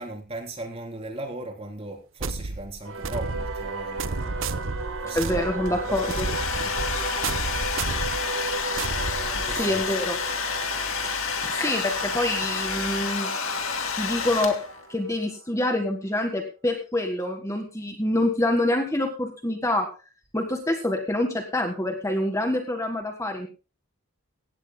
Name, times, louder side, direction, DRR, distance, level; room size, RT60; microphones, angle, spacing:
voice 1, 0.0-4.2 5.0-6.0 6.6-6.7 9.3-9.8, right 2 dB, 25° right, 2 dB, 3.8 m, -37 dB
sound 1, 2.2-9.8, right 3 dB, 65° right, 0.8 m, -32 dB
Singing / Musical instrument, 2.8-15.7, right 3 dB, 80° right, 5.7 m, -36 dB
voice 2, 5.1-6.3 9.5-10.2 11.5-13.3 13.9-14.6 14.9-19.9 20.3-23.5, left 1 dB, 15° left, 4 dB, 1.6 m, -26 dB
Domestic sounds home sounds, 5.7-14.9, left 5 dB, 70° left, 2.2 m, -29 dB
17.5 x 16.5 x 2.2 m, 0.33 s
head